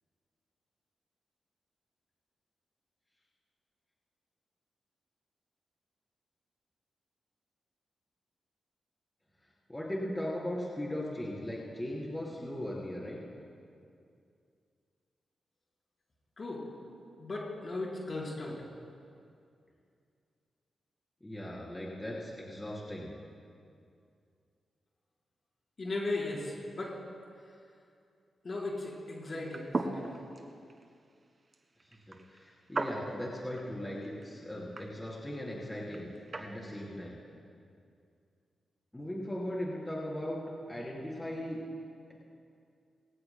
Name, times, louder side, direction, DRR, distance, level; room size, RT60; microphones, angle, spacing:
voice 1, 9.7-13.2 21.2-23.1 32.1-36.1 36.4-37.2 38.9-40.4 40.7-41.6, left 1 dB, 15° left, -6 dB, 3.7 m, -38 dB
voice 2, 17.2-18.7 25.8-26.9 28.4-30.0, left 2 dB, 45° left, -4 dB, 4.2 m, -37 dB
sound 1, 29.4-36.5, right 3 dB, 40° right, 1.4 m, -40 dB
23.0 x 18.0 x 2.2 m, 2.4 s
cardioid pair, 85°, 0 cm